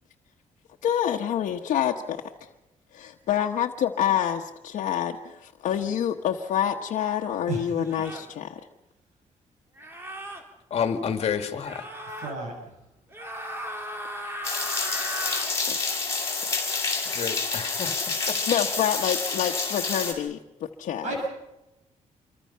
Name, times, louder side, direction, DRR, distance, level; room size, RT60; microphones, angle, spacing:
voice 1, 0.8-2.5 2.9-8.6 15.7-15.8 18.5-21.1, left 9 dB, 85° left, 1 dB, 1.1 m, -27 dB
sound 1, 6.5-6.6 7.8-8.3 9.8-10.4 11.6-12.3 13.1-15.5, equal, 20° right, 2.8 m, -36 dB
voice 2, 7.5-7.8 12.2-12.5 21.0-21.3, right 3 dB, 70° right, 2 dB, 6.4 m, -31 dB
voice 3, 10.7-11.8 17.1-18.0 18.3-18.4, left 7 dB, 55° left, 7 dB, 1.9 m, -29 dB
sound 2, 14.4-20.1, left 4 dB, 20° left, 5.0 m, -28 dB
26.5 x 24.0 x 5.7 m, 0.96 s
cardioid pair, 160°, 13 cm